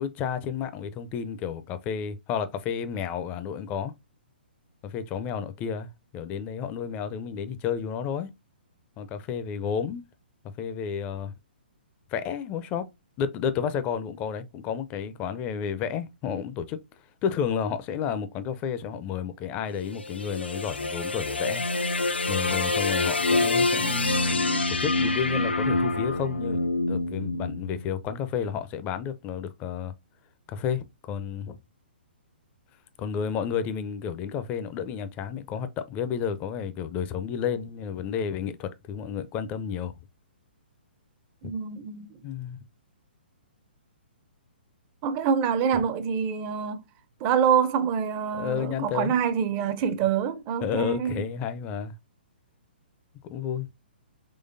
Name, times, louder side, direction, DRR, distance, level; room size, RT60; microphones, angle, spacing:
voice 1, 0.0-3.9 4.8-5.9 6.1-8.3 9.0-10.0 10.6-11.3 12.1-12.9 13.2-16.8 17.2-21.6 22.3-29.9 30.5-31.6 33.0-39.9 41.4-41.5 42.2-42.6 45.7-45.8 48.3-49.1 50.6-51.9 53.3-53.7, left 7 dB, 25° left, 0.4 m, -31 dB
sound 1, 19.8-28.1, left 2 dB, 85° left, 0.5 m, -26 dB
voice 2, 41.4-42.2 45.0-46.9 47.2-51.3, right 7 dB, 30° right, 0.5 m, -26 dB
3.8 x 3.1 x 2.5 m
figure-of-eight pair, 130°, 6 cm